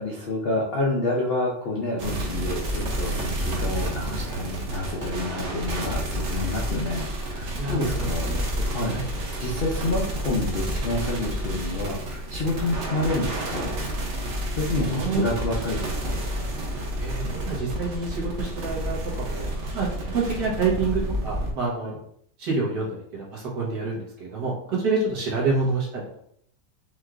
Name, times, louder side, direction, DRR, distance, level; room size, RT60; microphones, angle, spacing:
voice 1, 0.0-8.3 8.6-9.0 9.4-13.7 14.5-16.2 21.8-22.0, left 2 dB, 70° left, -3 dB, 0.5 m, -28 dB
sound 1, 2.0-21.5, equal, 55° right, 0.9 m, -30 dB
voice 2, 7.6-8.4 8.9-9.0 14.9-15.2 17.0-19.5 19.7-22.0 22.4-26.0, right 4 dB, 70° right, -5 dB, 2.0 m, -27 dB
5.3 x 3.1 x 2.5 m, 0.69 s
omnidirectional pair, 1.9 m